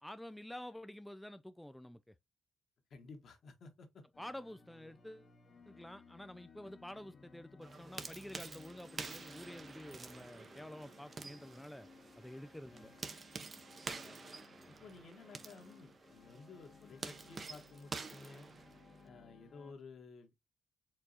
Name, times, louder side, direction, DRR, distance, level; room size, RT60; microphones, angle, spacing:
voice 1, 0.0-2.1 4.2-5.3 5.7-11.9 12.2-12.9, left 1 dB, 5° left, 0.3 m, -49 dB
voice 2, 2.9-4.1 12.7-13.0 13.9-14.3 14.7-18.5 19.0-20.3, left 4 dB, 55° left, 1.4 m, -54 dB
sound 1, 4.1-19.7, left 4 dB, 40° left, 1.0 m, -60 dB
sound 2, 7.6-19.1, right 4 dB, 35° right, 0.7 m, -49 dB
4.6 x 2.4 x 4.0 m
cardioid pair, 90°, 0 cm